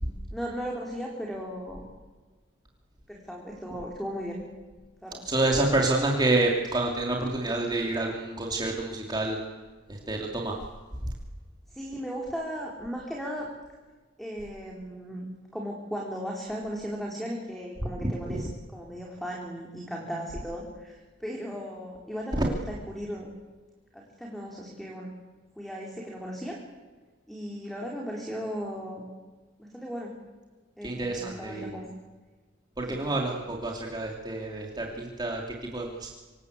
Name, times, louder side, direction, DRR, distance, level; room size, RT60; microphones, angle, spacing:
voice 1, 0.3-1.9 3.1-4.4 5.0-5.2 11.7-13.5 14.2-15.3 15.5-23.3 23.9-25.1 25.6-26.6 27.3-29.0 29.6-30.2 30.8-31.9 32.9-33.0, equal, ahead, -1 dB, 4.2 m, -36 dB
voice 2, 5.2-9.4 9.9-10.6 30.8-31.8 32.8-36.1, right 2 dB, 25° right, 0 dB, 3.4 m, -28 dB
26.5 x 26.0 x 8.3 m, 1.3 s
head